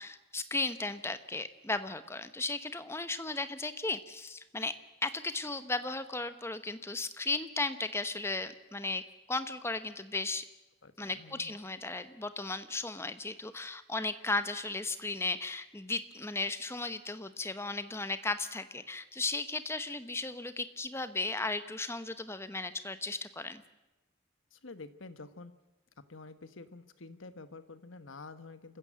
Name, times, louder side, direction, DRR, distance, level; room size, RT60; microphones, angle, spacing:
voice 1, 0.0-4.7 5.0-9.0 9.3-10.4 11.0-23.6, left 3 dB, 15° left, 11 dB, 0.9 m, -35 dB
voice 2, 10.8-11.6 24.5-25.5 26.1-28.8, left 3 dB, 80° left, 12 dB, 1.3 m, -49 dB
27.5 x 15.0 x 7.6 m, 1.0 s
head